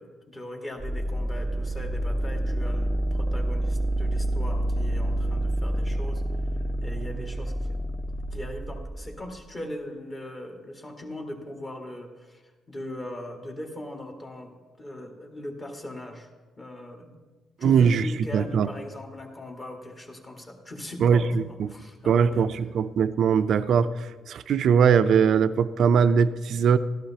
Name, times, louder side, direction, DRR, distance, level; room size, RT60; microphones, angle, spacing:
voice 1, 0.0-6.2 6.8-8.0 8.3-12.4 12.7-16.3 16.6-17.1 17.6-22.5, left 1 dB, 30° left, 1 dB, 1.8 m, -39 dB
sound 1, 0.8-9.5, right 1 dB, ahead, 0.5 m, -28 dB
voice 2, 17.6-18.1 18.3-18.7 21.0-21.2 21.6-21.7 22.1-23.9 24.3-26.8, right 7 dB, 65° right, 12 dB, 0.4 m, -20 dB
13.0 x 11.5 x 2.8 m, 1.3 s
cardioid pair, 90°, 0 cm